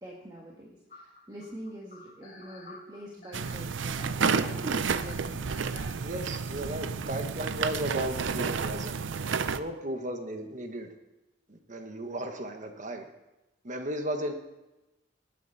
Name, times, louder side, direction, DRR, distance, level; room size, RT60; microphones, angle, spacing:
voice 1, 0.0-5.4, equal, 20° right, -3 dB, 1.7 m, -44 dB
sound 1, 0.9-6.0, left 2 dB, 45° left, 3.6 m, -50 dB
sound 2, 3.3-9.6, right 5 dB, 75° right, 0.6 m, -31 dB
voice 2, 6.0-9.0 9.5-10.9 11.5-13.1 13.6-14.3, right 1 dB, 40° right, 5 dB, 1.3 m, -35 dB
19.5 x 9.2 x 4.1 m, 1.0 s
head